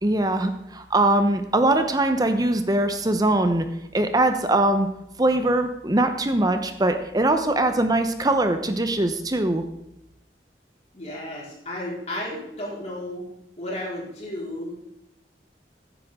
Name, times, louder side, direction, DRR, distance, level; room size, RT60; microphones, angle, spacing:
voice 1, 0.0-3.7 3.9-4.9 5.2-9.6, right 2 dB, 20° right, 7 dB, 0.8 m, -22 dB
voice 2, 10.9-13.3 13.6-14.7, left 1 dB, 40° left, -5 dB, 4.5 m, -33 dB
15.0 x 10.0 x 3.7 m, 0.84 s
head